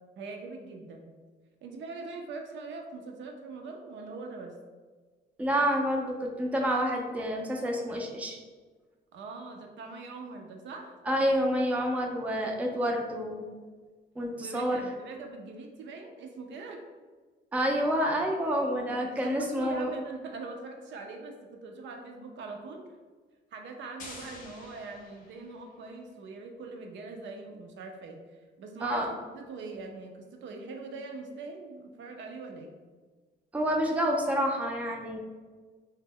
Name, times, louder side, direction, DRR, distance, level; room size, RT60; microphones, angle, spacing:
voice 1, 0.2-1.1 1.6-4.5 9.1-11.0 14.4-16.8 18.7-22.8 23.5-32.7, right 3 dB, 70° right, 3 dB, 0.4 m, -42 dB
voice 2, 5.4-8.4 11.1-13.5 14.2-14.8 17.5-19.9 28.8-29.1 33.5-35.2, equal, 5° right, 1 dB, 0.4 m, -28 dB
sound 1, 24.0-25.8, left 2 dB, 40° left, 0.6 m, -48 dB
2.0 x 2.0 x 3.6 m, 1.4 s
cardioid pair, 90°, 20 cm